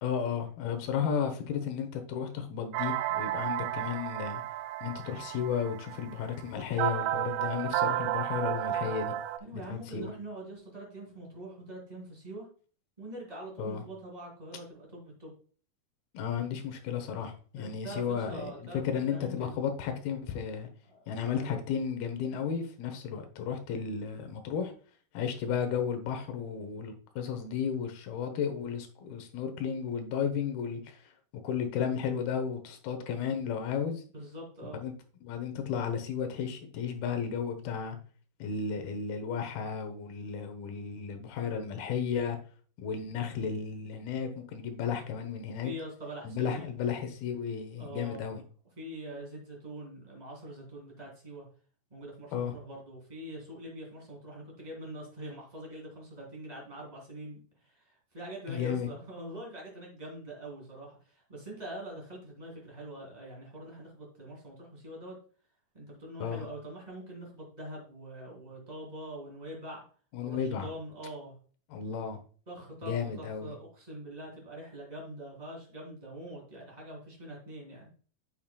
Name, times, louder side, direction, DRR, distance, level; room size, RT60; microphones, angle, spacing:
voice 1, 0.0-4.4 4.8-9.1 9.5-10.1 13.6-13.8 16.1-18.5 18.8-20.7 21.1-24.7 25.1-31.0 31.4-34.0 34.7-34.9 35.2-38.0 38.4-42.4 42.8-45.7 46.2-48.4 52.3-52.6 58.5-58.9 66.2-66.5 70.1-70.7 71.7-72.2 72.8-73.6, left 7 dB, 80° left, 6 dB, 2.9 m, -33 dB
sound 1, 2.7-9.4, right 13 dB, 90° right, 1.9 m, -32 dB
voice 2, 9.4-12.5 13.0-15.3 17.5-19.6 20.8-21.6 34.1-34.8 45.6-46.7 47.8-48.3 48.8-51.4 51.9-65.1 65.7-69.8 70.2-71.3 72.5-77.9, right 1 dB, 10° right, -3 dB, 2.8 m, -44 dB
9.1 x 6.7 x 2.3 m, 0.42 s
omnidirectional pair, 4.3 m